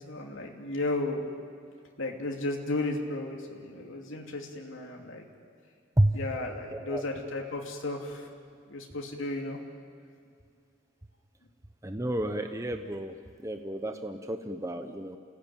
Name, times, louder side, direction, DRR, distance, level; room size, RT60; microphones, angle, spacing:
voice 1, 0.1-1.3 2.0-5.3 6.1-8.3 8.7-9.6, left 2 dB, 80° left, 1 dB, 2.7 m, -34 dB
voice 2, 6.7-7.0 11.8-13.1 13.4-15.2, right 1 dB, 15° right, 6 dB, 0.9 m, -30 dB
28.5 x 17.0 x 9.2 m, 2.2 s
head